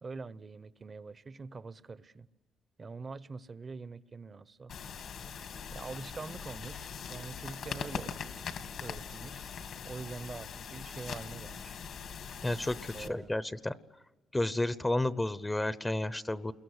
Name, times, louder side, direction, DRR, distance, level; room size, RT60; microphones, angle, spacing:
voice 1, 0.0-2.3 2.8-4.7 5.7-8.2 8.8-9.5 9.8-11.8 12.9-13.4, right 4 dB, 35° right, 0.8 m, -44 dB
sound 1, 4.7-13.1, left 7 dB, 70° left, 2.2 m, -42 dB
voice 2, 12.4-13.7 14.3-16.5, left 1 dB, 15° left, 0.8 m, -31 dB
28.5 x 22.0 x 8.1 m
cardioid pair, 90°, 0 cm